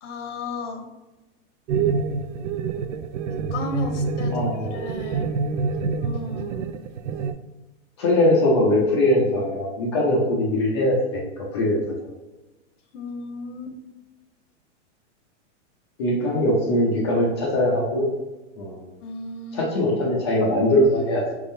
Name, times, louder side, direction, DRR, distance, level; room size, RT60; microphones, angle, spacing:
voice 1, 0.0-0.8 3.3-5.3 6.0-6.8 12.9-13.8 19.0-19.7, left 3 dB, 85° left, 3 dB, 1.2 m, -35 dB
sound 1, 1.7-7.3, right 5 dB, 85° right, 0.5 m, -26 dB
voice 2, 4.3-4.8 8.0-11.8 16.0-18.1 18.6-18.9 19.5-21.4, left 1 dB, 25° left, -2 dB, 0.5 m, -21 dB
5.2 x 3.6 x 2.6 m, 1.1 s
supercardioid pair, 175°, 36 cm